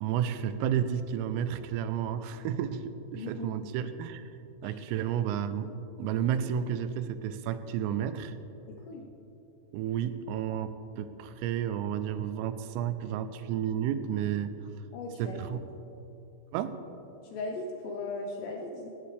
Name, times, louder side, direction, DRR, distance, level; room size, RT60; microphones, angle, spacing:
voice 1, 0.0-4.2 4.6-5.7 6.0-8.3 9.7-14.5 15.2-15.6 16.5-16.8, right 9 dB, 85° right, 11 dB, 3.3 m, -31 dB
voice 2, 3.1-3.6 4.6-4.8 8.9-9.1 14.9-15.4 17.3-18.9, left 2 dB, 75° left, 1 dB, 2.6 m, -38 dB
17.5 x 17.5 x 3.3 m, 2.9 s
omnidirectional pair, 5.8 m